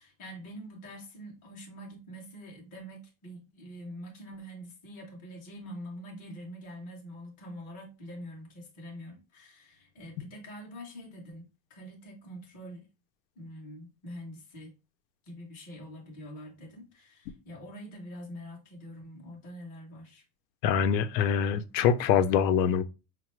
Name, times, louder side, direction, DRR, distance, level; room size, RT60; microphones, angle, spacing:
voice 1, 0.0-12.9 13.4-14.7 15.3-20.2, equal, 15° left, 0.5 m, -45 dB
voice 2, 20.6-22.8, left 8 dB, 80° left, 0.6 m, -24 dB
4.8 x 2.1 x 2.9 m
supercardioid pair, 175°, 50 cm